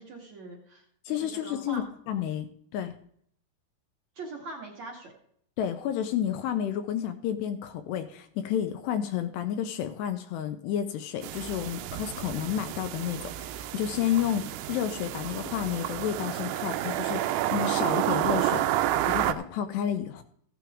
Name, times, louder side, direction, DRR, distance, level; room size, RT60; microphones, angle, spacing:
voice 1, 0.0-1.8 4.2-5.1, right 2 dB, 50° right, -1 dB, 2.3 m, -42 dB
voice 2, 1.1-2.9 5.6-18.7 19.1-20.2, left 10 dB, 80° left, 8 dB, 2.7 m, -31 dB
sound 1, 11.2-19.3, right 13 dB, 90° right, 3.0 m, -30 dB
15.5 x 9.2 x 3.6 m, 0.65 s
omnidirectional pair, 5.2 m